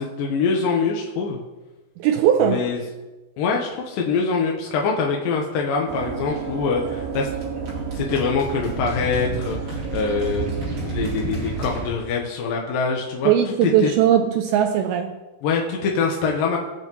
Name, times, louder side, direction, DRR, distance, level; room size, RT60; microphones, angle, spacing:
voice 1, 0.0-1.4 2.4-2.8 3.4-7.3 8.0-13.3 13.6-13.9 15.4-16.6, left 5 dB, 70° left, 2.3 m, -24 dB
voice 2, 2.0-2.6 13.2-15.1, right 9 dB, 85° right, 2.2 m, -19 dB
sound 1, 5.9-11.9, right 4 dB, 40° right, 3.0 m, -29 dB
19.5 x 8.0 x 3.0 m
omnidirectional pair, 5.0 m